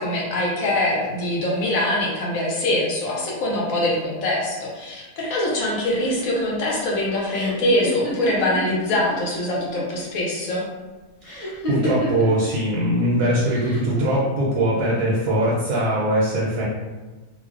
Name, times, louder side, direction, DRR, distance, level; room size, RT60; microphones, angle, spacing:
voice 1, 0.0-10.6, left 1 dB, 70° left, -3 dB, 0.9 m, -23 dB
sound 1, 5.6-9.2 9.4-10.1 11.2-12.4 13.4-14.0, left 1 dB, 30° left, 0.7 m, -31 dB
voice 2, 11.3-16.6, right 1 dB, 85° right, -6 dB, 1.1 m, -21 dB
2.6 x 2.0 x 2.4 m, 1.2 s
omnidirectional pair, 1.6 m